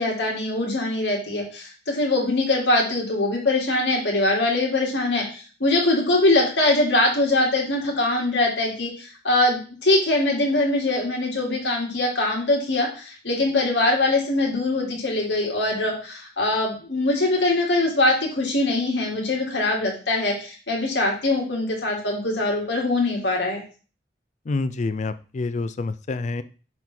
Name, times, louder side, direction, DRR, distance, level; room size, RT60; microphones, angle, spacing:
voice 1, 0.0-23.6, left 2 dB, 80° left, -1 dB, 2.2 m, -22 dB
voice 2, 24.5-26.4, left 3 dB, 40° left, 13 dB, 0.4 m, -27 dB
6.1 x 3.6 x 4.4 m, 0.37 s
head